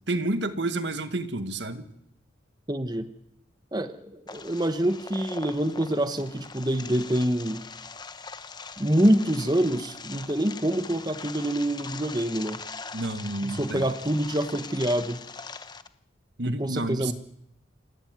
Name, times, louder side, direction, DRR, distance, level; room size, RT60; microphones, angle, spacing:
voice 1, 0.1-1.9 12.9-13.8 16.4-17.1, right 2 dB, 65° right, 10 dB, 1.8 m, -30 dB
voice 2, 2.7-3.1 3.7-7.6 8.8-12.6 13.4-15.2 16.5-17.1, right 1 dB, 20° right, 9 dB, 1.2 m, -26 dB
sound 1, 4.3-15.9, left 4 dB, 20° left, 1.0 m, -41 dB
27.5 x 16.0 x 9.5 m, 0.76 s
head